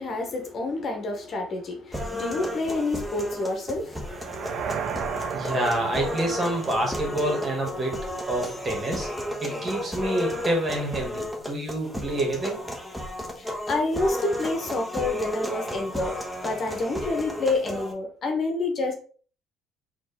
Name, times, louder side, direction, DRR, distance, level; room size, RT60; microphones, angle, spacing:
voice 1, 0.0-5.5 13.4-16.1 16.4-18.9, left 2 dB, 50° left, 1.1 m, -29 dB
sound 1, 1.9-17.9, left 1 dB, 5° right, 1.2 m, -33 dB
sound 2, 4.0-8.1, right 7 dB, 60° right, 0.5 m, -35 dB
voice 2, 5.3-8.0 8.3-9.1 9.4-12.6, right 1 dB, 40° right, 2.1 m, -27 dB
4.1 x 3.1 x 3.6 m
supercardioid pair, 70°, 0 cm